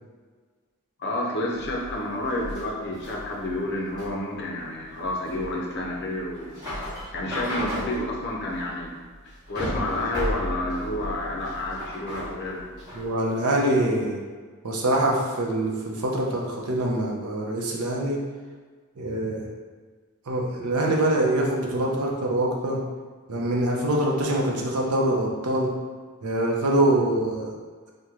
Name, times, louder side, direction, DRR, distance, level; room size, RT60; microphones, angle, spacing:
voice 1, 1.0-6.6 7.1-8.9 9.5-12.6, left 1 dB, 50° left, -2 dB, 0.6 m, -30 dB
sound 1, 1.5-13.1, equal, 20° right, 1.1 m, -35 dB
voice 2, 12.9-14.2 14.6-18.2 19.0-19.4 20.3-22.8 23.3-25.7 26.2-27.5, right 1 dB, 90° right, -1 dB, 0.6 m, -24 dB
3.0 x 2.2 x 3.6 m, 1.5 s
head